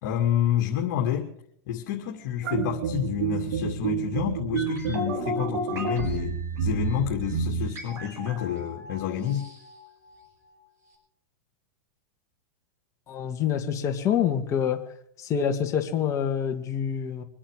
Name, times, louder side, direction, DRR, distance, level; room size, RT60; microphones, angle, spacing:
voice 1, 0.0-1.3 1.7-9.5, left 10 dB, 65° left, 0 dB, 2.5 m, -29 dB
sound 1, 2.4-7.7, right 5 dB, 80° right, 3.4 m, -29 dB
sound 2, 4.6-10.6 10.9-11.0, equal, 30° right, 6.0 m, -42 dB
voice 2, 13.1-14.8 15.2-17.2, left 8 dB, 30° left, 3 dB, 2.2 m, -26 dB
24.5 x 8.7 x 6.7 m, 0.66 s
supercardioid pair, 130°, 10 cm